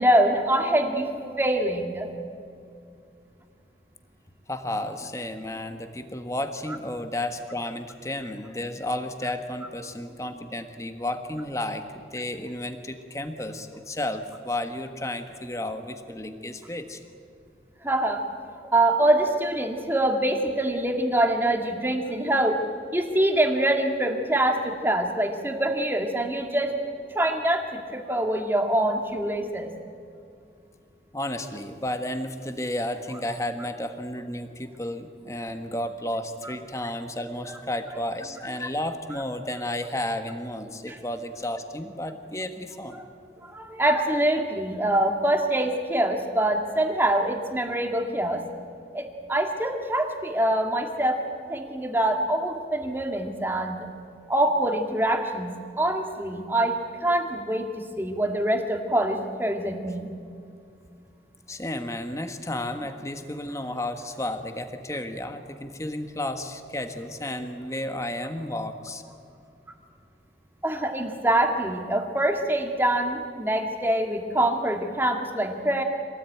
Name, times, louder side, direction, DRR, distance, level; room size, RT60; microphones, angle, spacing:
voice 1, 0.0-2.1 17.8-18.2 18.7-26.7 27.1-29.7 40.9-41.0 42.9-43.0 43.4-48.4 48.9-51.2 51.5-53.9 54.3-55.5 55.8-56.8 57.0-60.1 70.6-75.8, right 1 dB, 10° right, 4 dB, 1.9 m, -24 dB
voice 2, 4.5-11.8 12.1-17.0 31.1-43.0 61.5-69.0, left 1 dB, 15° left, 7 dB, 1.4 m, -32 dB
26.0 x 18.5 x 9.2 m, 2.4 s
head